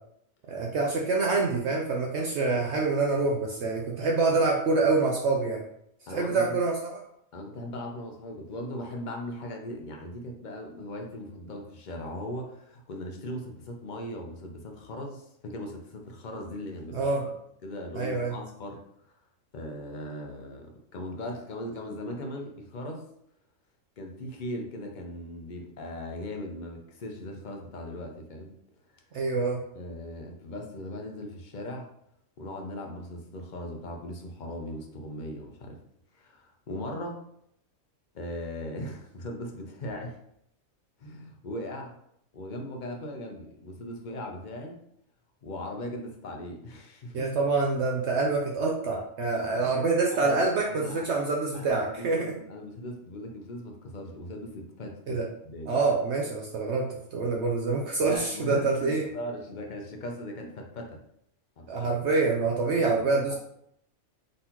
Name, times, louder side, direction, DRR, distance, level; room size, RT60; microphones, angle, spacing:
voice 1, 0.5-5.6 6.1-7.0 16.9-17.2 17.9-18.3 29.1-29.6 47.1-52.3 55.1-55.3 55.7-59.0 61.7-63.4, right 3 dB, 65° right, -1 dB, 0.9 m, -26 dB
voice 2, 6.1-6.5 7.3-17.3 17.6-18.8 19.5-23.0 24.0-28.5 29.7-31.9 32.4-35.8 36.1-37.2 38.1-40.2 41.0-41.9 42.3-44.8 45.4-47.3 49.3-49.7 50.1-50.4 50.6-51.0 51.5-55.8 58.0-61.0 61.6-61.7 63.3-63.4, left 1 dB, 45° left, 2 dB, 0.7 m, -38 dB
4.0 x 3.8 x 2.8 m, 0.73 s
omnidirectional pair, 1.4 m